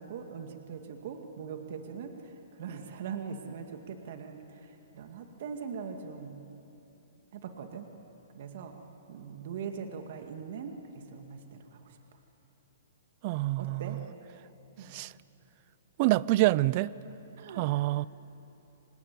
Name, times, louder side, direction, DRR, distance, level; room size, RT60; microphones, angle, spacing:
voice 1, 0.0-6.4 7.3-7.9 8.3-8.8 9.1-12.0 13.6-14.0 14.8-15.0 17.4-17.9, right 6 dB, 55° right, 2.0 m, -41 dB
voice 2, 13.2-14.0 14.9-15.1 16.0-16.9 17.6-18.1, right 18 dB, 40° right, 0.5 m, -26 dB
26.0 x 19.5 x 9.6 m
hypercardioid pair, 140°, 0 cm